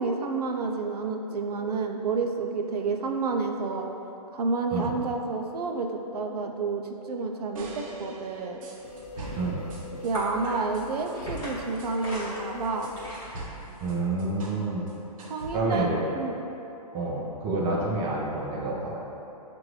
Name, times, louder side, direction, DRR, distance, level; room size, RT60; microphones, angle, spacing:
voice 1, 0.0-3.9 4.3-8.6 10.0-12.9 15.3-16.4, right 4 dB, 75° right, 3 dB, 0.4 m, -30 dB
sound 1, 1.5-1.7 2.5-2.7 3.5-3.8 4.5-4.8 5.0-5.2 5.5-5.7 6.0-6.2 6.4-6.7 6.9-7.1 7.4-7.6 7.9-8.1 8.4-8.6 8.8-13.1, left 4 dB, 55° left, 0.5 m, -45 dB
sound 2, 7.5-10.2 10.7-14.6 14.9-15.9, right 2 dB, 55° right, 0.8 m, -42 dB
sound 3, 8.8-13.9, equal, 20° left, 1.2 m, -40 dB
voice 2, 9.4-9.7 13.8-14.9 15.5-16.0 16.9-19.0, right 2 dB, 20° right, -4 dB, 0.5 m, -28 dB
6.4 x 2.5 x 3.1 m, 3.0 s
hypercardioid pair, 150°, 20 cm